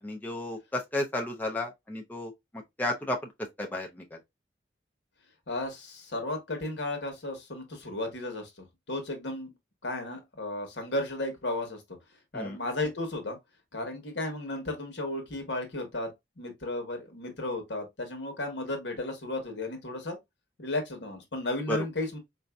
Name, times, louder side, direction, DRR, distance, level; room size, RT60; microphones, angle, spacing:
voice 1, 0.0-2.3 2.8-3.2 3.6-4.2 12.3-12.6 21.7-21.8, left 1 dB, 10° left, 0.4 m, -32 dB
voice 2, 5.5-9.5 9.8-11.8 12.3-13.4 13.7-16.1 16.4-20.2 20.6-22.2, left 2 dB, 75° left, 1.1 m, -34 dB
4.1 x 2.6 x 2.2 m
head